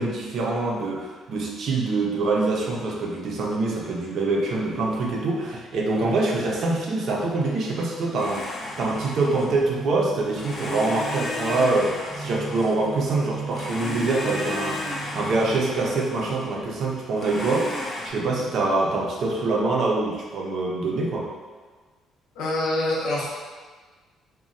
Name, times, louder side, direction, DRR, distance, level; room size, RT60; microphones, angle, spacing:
voice 1, 0.0-8.4 8.8-14.8 15.1-17.7 18.0-21.3, right 3 dB, 50° right, -2 dB, 0.4 m, -25 dB
Domestic sounds home sounds, 8.1-9.8 10.3-13.1 13.5-16.5 17.2-18.1, left 1 dB, 35° left, 0.4 m, -34 dB
sound 1, 8.6-16.5, right 4 dB, 15° right, 0.7 m, -38 dB
voice 2, 22.4-23.3, left 1 dB, 85° left, -5 dB, 0.7 m, -25 dB
2.9 x 2.1 x 2.6 m, 1.4 s
cardioid pair, 170°, 0 cm